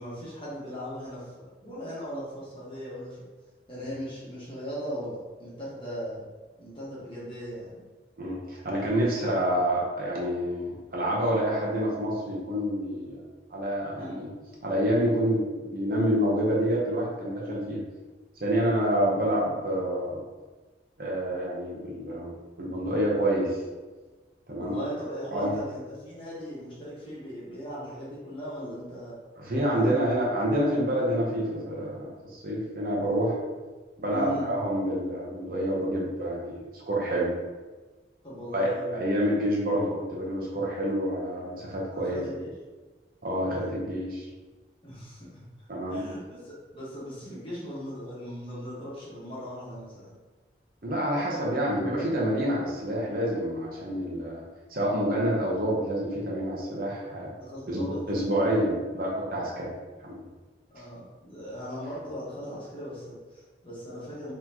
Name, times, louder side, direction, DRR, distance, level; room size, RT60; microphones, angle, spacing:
voice 1, 0.0-3.2 3.7-6.2 6.6-7.8 14.0-14.3 24.6-29.1 29.7-30.0 34.1-34.5 38.2-39.0 41.9-42.5 44.8-45.4 45.9-50.1 57.4-58.0 58.4-58.7 59.3-59.5 60.7-64.3, equal, 30° left, -8 dB, 1.3 m, -38 dB
voice 2, 8.2-13.2 13.5-14.3 14.6-17.8 18.4-20.2 21.0-22.3 22.6-23.6 24.5-24.8 25.3-25.5 29.4-33.4 34.0-37.3 38.5-42.2 43.2-44.3 45.7-46.0 50.8-54.4 54.7-57.3 57.7-59.7 60.0-60.3, equal, 55° right, -4 dB, 0.8 m, -27 dB
4.1 x 3.1 x 2.8 m, 1.3 s
head